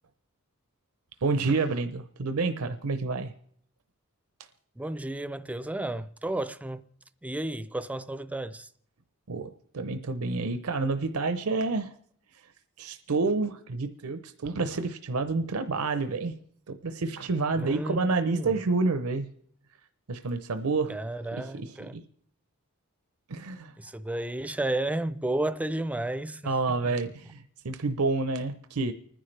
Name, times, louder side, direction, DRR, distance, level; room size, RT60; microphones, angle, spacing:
voice 1, 1.2-3.3 9.3-11.9 12.8-16.4 16.7-19.3 20.1-20.9 21.4-22.0 23.3-23.7 26.4-28.9, right 3 dB, 75° right, 0.7 m, -29 dB
voice 2, 4.8-6.8 7.2-8.7 17.5-18.6 20.9-22.0 23.8-26.6, right 1 dB, 5° right, 0.5 m, -32 dB
29.5 x 10.0 x 3.3 m
head